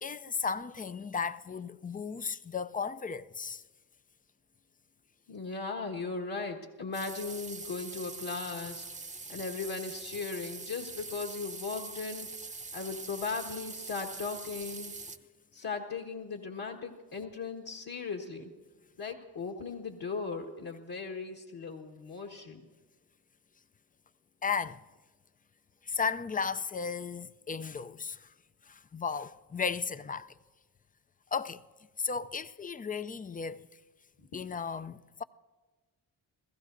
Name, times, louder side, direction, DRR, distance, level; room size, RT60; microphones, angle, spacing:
voice 1, 0.0-3.6 24.4-24.8 25.8-28.3 28.7-30.3 31.3-31.6 32.0-33.7 34.3-35.2, left 5 dB, 20° left, 0.5 m, -35 dB
voice 2, 5.3-8.9 9.3-12.3 12.7-14.9 15.5-18.5 19.0-22.6 34.2-34.3, left 4 dB, 50° left, 1.7 m, -37 dB
sound 1, 6.9-15.2, right 3 dB, 15° right, 0.8 m, -43 dB
28.5 x 15.5 x 2.7 m
supercardioid pair, 55°, 46 cm